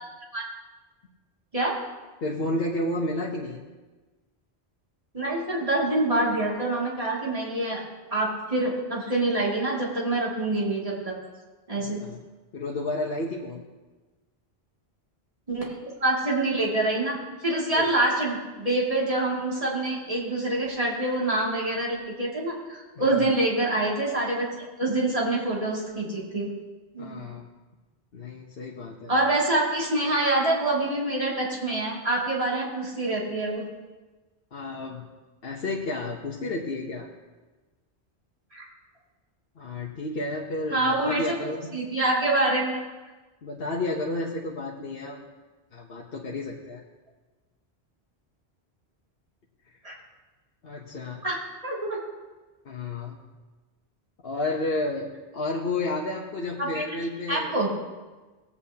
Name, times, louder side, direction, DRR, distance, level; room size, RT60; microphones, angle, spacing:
voice 1, 2.2-3.6 11.7-12.2 12.5-13.6 17.7-17.9 23.0-23.3 27.0-27.5 28.1-29.1 34.5-35.0 35.4-37.1 39.6-41.7 43.4-45.3 45.7-46.8 50.6-51.2 52.6-53.2 54.2-57.6, left 2 dB, 65° left, -2 dB, 1.1 m, -31 dB
voice 2, 5.1-7.8 8.1-11.2 11.7-12.0 15.5-26.5 26.9-27.4 29.1-33.6 38.5-38.7 40.7-42.8 49.8-49.9 51.2-51.4 51.6-52.0 56.6-56.8 57.3-57.7, right 2 dB, 35° right, -5 dB, 2.5 m, -26 dB
19.0 x 8.4 x 2.8 m, 1.2 s
omnidirectional pair, 1.1 m